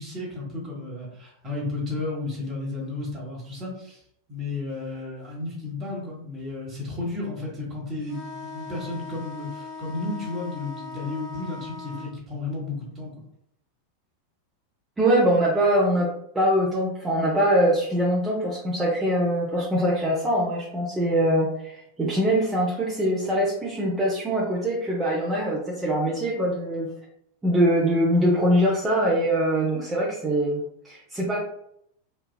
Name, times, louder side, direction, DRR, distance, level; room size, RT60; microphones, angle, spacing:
voice 1, 0.0-4.0 4.3-13.1, left 2 dB, 30° right, -3 dB, 1.2 m, -33 dB
sound 1, 8.0-12.1, left 4 dB, 35° left, 1.1 m, -39 dB
voice 2, 15.0-16.1 16.3-26.9 27.4-30.6 30.8-31.5, equal, 10° right, -6 dB, 0.6 m, -23 dB
3.2 x 2.2 x 2.2 m, 0.73 s
figure-of-eight pair, 90°, 0 cm